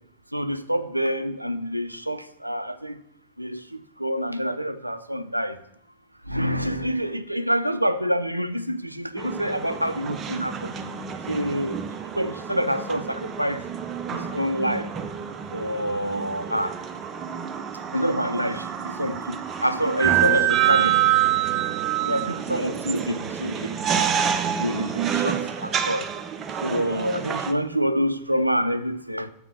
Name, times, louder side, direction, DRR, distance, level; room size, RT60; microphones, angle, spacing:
voice 1, 0.3-3.0 3.4-3.6 4.0-5.6 6.3-10.7 11.3-11.8 12.2-13.6 14.1-14.9 15.5-16.7 17.9-21.0 22.0-23.8 24.6-26.0 26.6-29.3, equal, 90° right, 0.4 m, -27 dB
sound 1, 9.2-27.5, right 10 dB, 25° right, 0.6 m, -27 dB
7.2 x 3.8 x 5.8 m
figure-of-eight pair, 90°, 0 cm